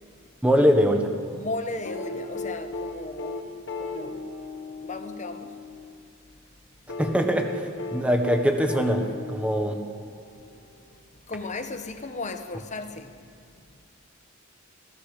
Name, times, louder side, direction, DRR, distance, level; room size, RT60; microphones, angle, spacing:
voice 1, 0.4-1.1 7.0-9.8, equal, 5° right, 1.3 m, -22 dB
voice 2, 1.3-3.5 3.8-4.3 4.8-5.5 11.3-13.1, left 3 dB, 35° left, 1.0 m, -35 dB
sound 1, 1.8-5.9 6.9-10.5 11.9-12.0, left 3 dB, 55° left, 1.5 m, -36 dB
19.5 x 14.0 x 5.0 m
head